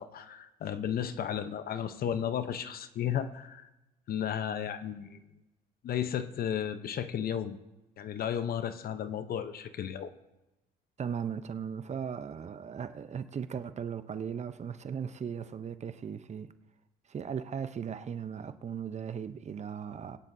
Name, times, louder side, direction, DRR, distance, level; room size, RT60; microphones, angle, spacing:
voice 1, 0.0-3.7 4.1-5.2 5.8-7.6 8.0-10.1, left 9 dB, 55° left, 0.9 m, -34 dB
voice 2, 11.0-16.5 17.1-20.2, right 7 dB, 40° right, 0.8 m, -37 dB
21.5 x 9.6 x 2.7 m
supercardioid pair, 80°, 18 cm